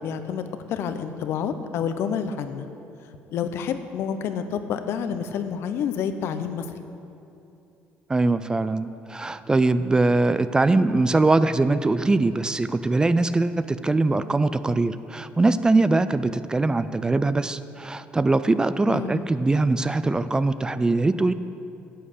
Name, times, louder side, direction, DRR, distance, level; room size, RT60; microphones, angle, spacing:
voice 1, 0.0-2.7 3.3-6.8 18.9-19.2, left 7 dB, 70° left, 9 dB, 0.7 m, -29 dB
voice 2, 8.1-21.3, right 2 dB, 15° right, 13 dB, 0.4 m, -22 dB
10.0 x 7.6 x 6.7 m, 2.8 s
cardioid pair, 95°, 4 cm